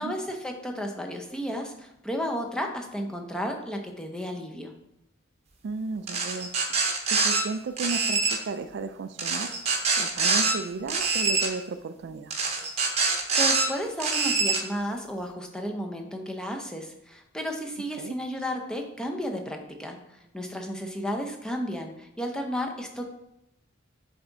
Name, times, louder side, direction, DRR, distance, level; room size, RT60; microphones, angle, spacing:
voice 1, 0.0-4.7 13.3-20.0 20.3-23.1, equal, 5° left, 2 dB, 0.6 m, -33 dB
voice 2, 5.6-9.5 10.0-12.3 18.0-18.2, right 4 dB, 60° right, 10 dB, 0.4 m, -34 dB
sound 1, 6.1-7.4 7.8-8.4 9.2-10.5 10.9-11.5 12.3-13.7 14.0-14.6, right 4 dB, 35° right, 0.9 m, -25 dB
7.4 x 3.5 x 3.9 m, 0.83 s
head